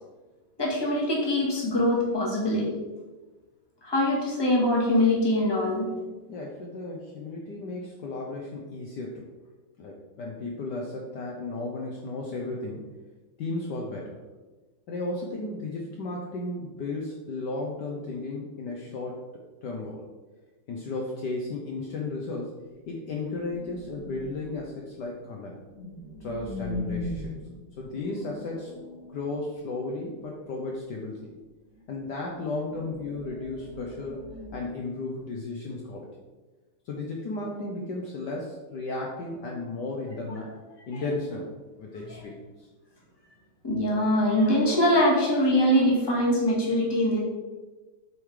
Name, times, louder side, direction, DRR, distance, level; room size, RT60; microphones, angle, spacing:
voice 1, 0.6-2.7 3.8-6.0 40.9-41.0 42.1-42.2 43.6-47.2, left 1 dB, 15° left, -3 dB, 1.4 m, -23 dB
voice 2, 6.3-9.3 9.8-12.9 13.4-14.2 14.9-19.2 19.6-20.1 20.7-25.6 26.2-27.4 27.8-28.7 29.1-31.3 31.9-34.2 34.5-36.2 36.8-40.5 40.9-42.7, left 2 dB, 60° left, -1 dB, 1.2 m, -34 dB
sound 1, 23.3-24.7 25.3-30.1 31.6-31.9 32.3-35.3, left 2 dB, 40° left, 2.0 m, -40 dB
7.9 x 3.8 x 4.8 m, 1.2 s
omnidirectional pair, 2.4 m